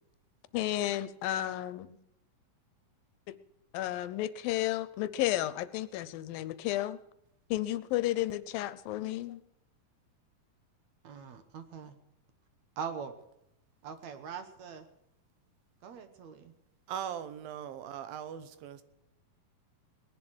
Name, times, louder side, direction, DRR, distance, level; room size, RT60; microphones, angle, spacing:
voice 1, 0.5-2.0 3.7-7.0 7.5-9.4, left 14 dB, 80° left, 15 dB, 2.4 m, -32 dB
voice 2, 11.0-11.9 12.8-13.1 13.8-14.9 15.8-16.5, right 7 dB, 65° right, 9 dB, 2.1 m, -42 dB
voice 3, 16.9-18.8, right 9 dB, 80° right, 12 dB, 2.7 m, -39 dB
19.5 x 11.0 x 6.1 m, 0.82 s
omnidirectional pair, 4.2 m